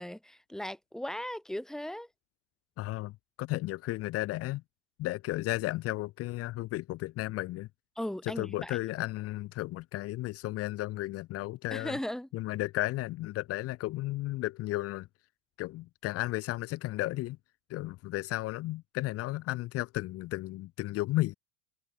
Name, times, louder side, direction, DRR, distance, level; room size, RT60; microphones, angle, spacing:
voice 1, 0.0-2.1 8.0-8.8 11.7-12.3, left 1 dB, ahead, 2.8 m, -37 dB
voice 2, 2.8-3.1 3.4-4.6 5.0-7.7 8.2-12.0 12.3-15.1 15.6-17.4 17.7-21.4, left 18 dB, 45° left, 1.3 m, -34 dB
supercardioid pair, 125°, 32 cm